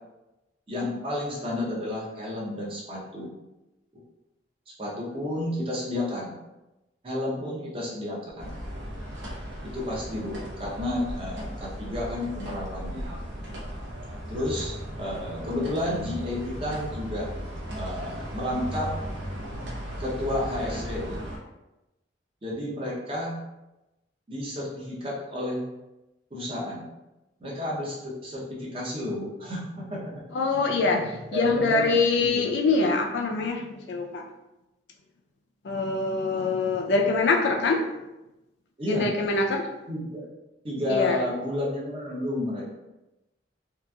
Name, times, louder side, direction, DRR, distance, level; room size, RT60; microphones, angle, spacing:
voice 1, 0.7-3.3 4.8-6.3 7.0-8.5 9.6-13.1 14.3-17.3 17.7-19.0 20.0-21.2 22.4-23.4 24.3-25.6 26.3-26.9 27.4-30.0 30.9-31.0 31.3-31.8 32.2-32.5 36.3-36.4 38.8-39.1 39.9-40.2 40.6-42.7, left 1 dB, 30° right, -4 dB, 0.6 m, -31 dB
sound 1, 8.4-21.4, equal, 75° right, 0.7 m, -36 dB
voice 2, 30.3-31.0 31.3-34.2 35.6-37.8 38.9-39.7 40.9-41.2, left 3 dB, 65° left, 2 dB, 0.4 m, -24 dB
2.9 x 2.4 x 2.2 m, 0.98 s
head